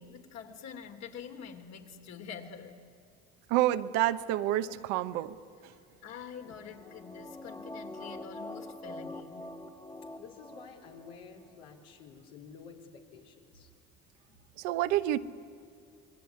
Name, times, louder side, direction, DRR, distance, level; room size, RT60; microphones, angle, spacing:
voice 1, 0.0-2.8 5.1-5.2 6.0-9.6 14.3-14.4, left 7 dB, 60° left, 5 dB, 3.3 m, -46 dB
voice 2, 3.5-5.3 14.6-15.2, right 14 dB, 80° right, 11 dB, 1.1 m, -28 dB
sound 1, 6.4-11.1 11.5-11.6, left 1 dB, 10° left, 1.8 m, -45 dB
voice 3, 10.2-13.7, left 6 dB, 90° left, 1 dB, 4.0 m, -51 dB
27.0 x 21.0 x 9.7 m, 2.4 s
supercardioid pair, 75°, 29 cm